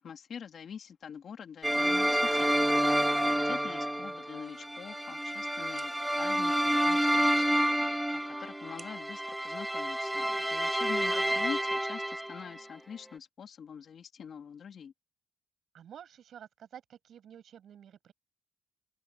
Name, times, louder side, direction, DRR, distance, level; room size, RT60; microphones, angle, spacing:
voice 1, 0.0-2.7 3.3-14.9, left 7 dB, 55° left, 2.7 m, -45 dB
sound 1, 1.6-12.6, right 1 dB, 5° right, 0.6 m, -29 dB
sound 2, 4.5-10.5, right 5 dB, 35° right, 7.2 m, -63 dB
voice 2, 11.1-11.6 15.7-18.1, right 9 dB, 65° right, 6.8 m, -50 dB
open air
cardioid pair, 90°, 0 cm